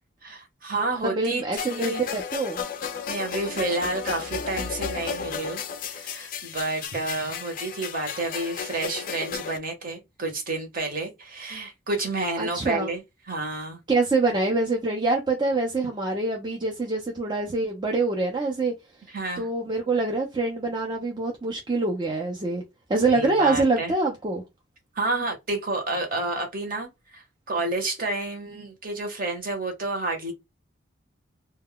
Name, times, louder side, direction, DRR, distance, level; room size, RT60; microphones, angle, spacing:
voice 1, 0.2-2.0 3.1-13.0 13.3-13.8 19.1-19.5 23.1-23.9 24.9-30.3, right 2 dB, 45° right, 0.8 m, -30 dB
voice 2, 1.0-2.6 12.4-12.9 13.9-18.7 19.4-22.6 22.9-24.4, right 3 dB, 20° right, 0.4 m, -25 dB
sound 1, 1.6-9.6, left 7 dB, 45° left, 0.3 m, -33 dB
2.2 x 2.1 x 3.5 m
head